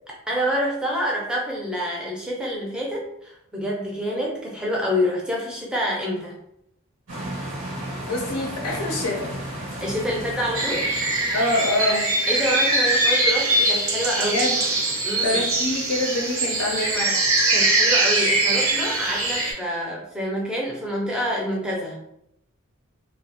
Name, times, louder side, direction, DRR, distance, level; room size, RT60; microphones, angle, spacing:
voice 1, 0.3-6.3 9.8-10.9 12.3-14.3 15.0-15.4 17.5-22.0, equal, 5° right, -3 dB, 0.4 m, -27 dB
sound 1, 7.1-12.1, right 1 dB, 85° right, 1.0 m, -34 dB
voice 2, 8.1-9.3 11.3-12.1 14.1-14.6 15.2-17.3, left 1 dB, 85° left, 0 dB, 0.5 m, -25 dB
sound 2, 10.5-19.5, right 2 dB, 70° right, 0.6 m, -22 dB
2.3 x 2.0 x 2.8 m, 0.79 s
head